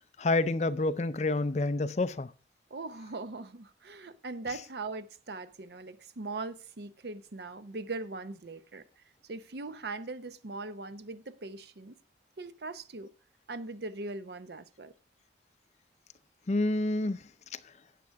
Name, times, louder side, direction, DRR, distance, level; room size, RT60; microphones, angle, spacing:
voice 1, 0.2-2.3 16.5-17.2 17.5-17.6, left 2 dB, 40° left, 0.5 m, -28 dB
voice 2, 2.7-12.0 12.4-13.1 13.5-14.9, right 3 dB, 65° right, 0.7 m, -40 dB
12.5 x 8.6 x 3.5 m
head